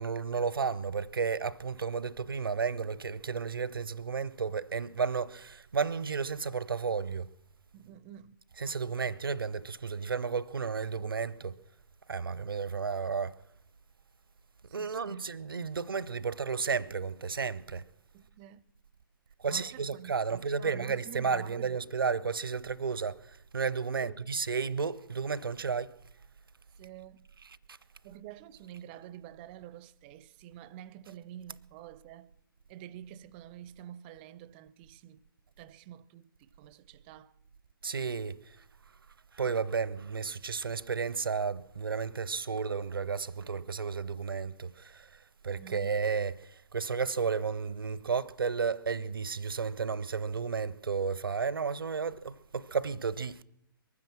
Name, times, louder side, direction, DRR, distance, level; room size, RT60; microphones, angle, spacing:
voice 1, 0.0-7.3 8.6-11.5 12.1-13.4 14.7-17.8 19.4-26.0 37.8-38.4 39.3-45.1 45.4-53.4, right 5 dB, 70° right, 0.6 m, -32 dB
voice 2, 7.7-8.4 14.7-15.3 18.1-18.6 19.5-22.0 24.0-24.3 26.8-27.3 28.0-32.3 32.7-35.2 35.6-37.4 45.6-46.0, right 11 dB, 25° right, 0.5 m, -48 dB
22.5 x 9.7 x 6.0 m
figure-of-eight pair, 120°, 12 cm